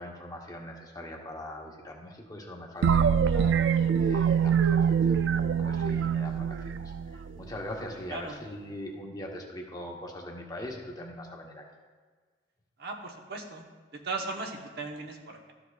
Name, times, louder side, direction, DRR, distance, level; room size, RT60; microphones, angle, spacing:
voice 1, 0.0-11.7, left 1 dB, 20° left, 0 dB, 0.9 m, -42 dB
sound 1, 2.8-7.5, right 7 dB, 85° right, 0.3 m, -24 dB
voice 2, 12.8-13.6 13.9-15.5, right 3 dB, 60° right, 2 dB, 1.0 m, -37 dB
13.0 x 6.9 x 2.4 m, 1.5 s
head